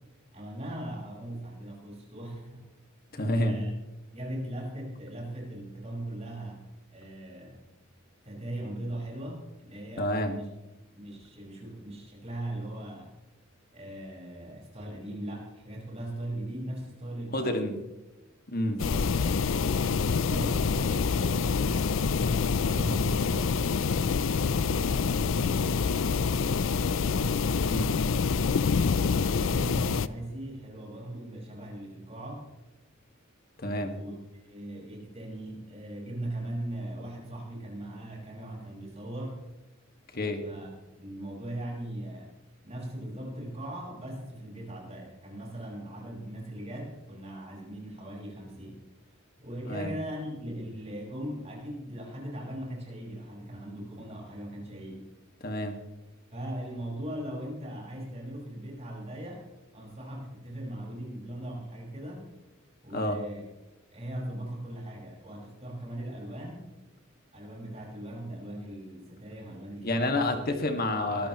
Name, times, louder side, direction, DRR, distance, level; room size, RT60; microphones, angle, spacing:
voice 1, 0.3-2.7 3.4-3.7 4.1-6.7 6.9-7.6 8.2-10.5 10.9-13.1 13.7-17.8 18.6-19.5 20.0-21.9 22.2-27.4 28.9-32.5 33.9-39.4 40.4-40.7 41.0-42.3 42.6-48.8 49.4-55.1 56.3-59.5 59.7-62.3 62.8-63.4 63.9-66.7 67.3-70.4 71.1-71.3, right 1 dB, 30° right, -1 dB, 5.5 m, -39 dB
voice 2, 3.1-3.6 10.0-10.4 17.3-17.8 18.5-18.8 27.7-28.0 33.6-33.9 40.1-40.4 49.7-49.9 55.4-55.8 62.9-63.2 69.8-71.3, left 1 dB, 45° left, 5 dB, 1.9 m, -29 dB
sound 1, 18.8-30.1, left 5 dB, 70° left, 0.5 m, -26 dB
22.5 x 14.0 x 3.1 m, 1.1 s
head